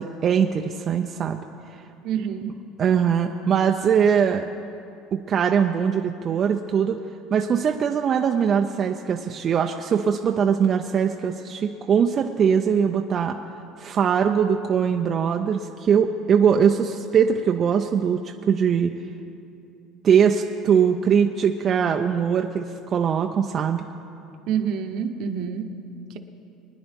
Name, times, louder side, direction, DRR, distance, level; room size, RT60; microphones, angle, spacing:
voice 1, 0.0-1.4 2.8-4.5 5.1-7.0 7.3-13.4 13.8-18.9 20.0-23.8, right 7 dB, 30° right, 4 dB, 0.5 m, -21 dB
voice 2, 2.0-2.6 24.5-25.8, right 7 dB, 60° right, 7 dB, 0.9 m, -27 dB
23.5 x 10.0 x 3.5 m, 2.6 s
cardioid pair, 155°, 0 cm